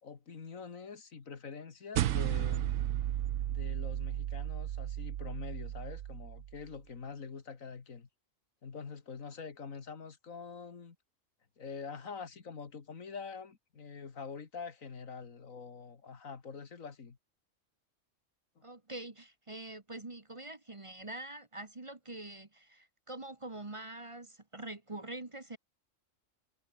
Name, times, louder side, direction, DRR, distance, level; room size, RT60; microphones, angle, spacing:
voice 1, 0.0-2.7 3.5-8.1 8.6-11.0 11.6-17.2 18.6-18.7, left 5 dB, 90° left, 2.3 m, -45 dB
sound 1, 2.0-6.6, right 12 dB, 80° right, 1.1 m, -34 dB
voice 2, 18.6-25.6, right 2 dB, 25° right, 1.3 m, -45 dB
omnidirectional pair, 1.4 m